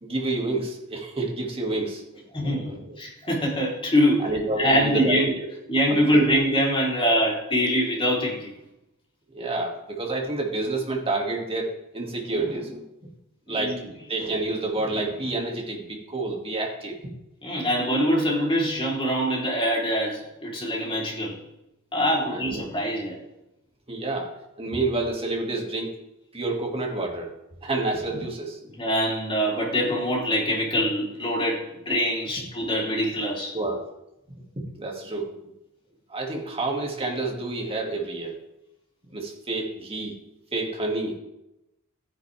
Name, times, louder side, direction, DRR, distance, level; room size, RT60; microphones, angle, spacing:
voice 1, 0.0-3.0 4.2-5.5 5.9-6.2 9.3-13.1 13.5-13.8 14.1-17.0 22.0-22.6 23.9-24.3 24.6-25.9 26.3-27.3 27.6-28.7 33.5-33.8 34.6-35.3 36.1-38.4 39.1-40.1 40.5-41.2, right 2 dB, 25° right, 0 dB, 2.3 m, -29 dB
voice 2, 2.3-5.3 5.7-8.5 13.5-13.8 17.4-21.3 21.9-23.2 28.8-33.5, equal, 25° left, -3 dB, 3.6 m, -24 dB
15.0 x 9.9 x 3.5 m, 0.89 s
head